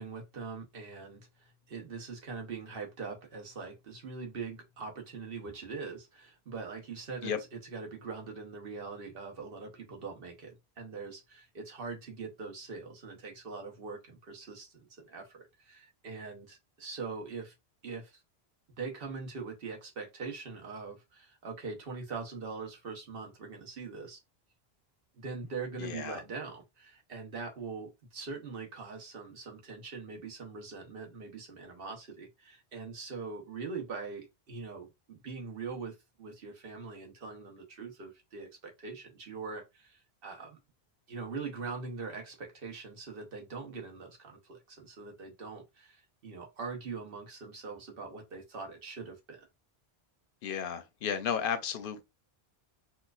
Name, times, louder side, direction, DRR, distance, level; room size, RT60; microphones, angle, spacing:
voice 1, 0.0-17.5 17.8-18.2 18.8-24.2 25.1-40.6 41.1-49.5, right 4 dB, 60° right, 1.2 m, -42 dB
voice 2, 25.8-26.2 50.4-52.0, left 7 dB, 60° left, 0.7 m, -33 dB
4.3 x 2.4 x 2.4 m
omnidirectional pair, 1.1 m